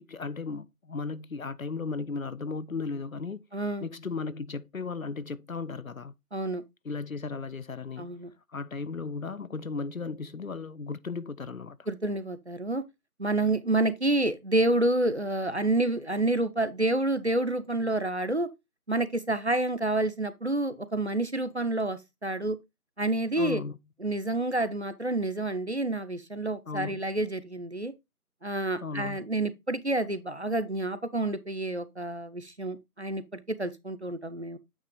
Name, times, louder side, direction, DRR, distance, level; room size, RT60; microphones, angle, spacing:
voice 1, 0.0-3.5 3.8-6.1 6.8-8.2 8.5-11.9 23.3-23.8 26.7-27.0 28.8-29.2, left 4 dB, 60° left, 0.6 m, -35 dB
voice 2, 3.5-3.9 6.3-6.6 8.0-8.3 11.9-12.8 13.2-18.5 18.9-22.6 23.0-23.6 24.0-27.9 28.4-34.6, right 2 dB, 45° right, 0.6 m, -28 dB
8.8 x 3.1 x 4.7 m
figure-of-eight pair, 165°, 46 cm